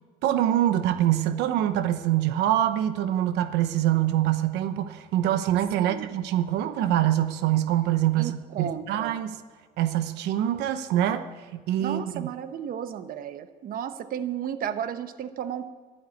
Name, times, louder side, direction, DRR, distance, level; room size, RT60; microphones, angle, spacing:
voice 1, 0.2-9.4 9.8-11.2 11.5-12.3, right 12 dB, 90° right, 10 dB, 0.9 m, -24 dB
voice 2, 5.8-6.1 8.2-9.2 11.8-15.7, right 9 dB, 60° right, 11 dB, 1.0 m, -33 dB
12.5 x 12.0 x 8.5 m, 1.4 s
cardioid pair, 110°, 17 cm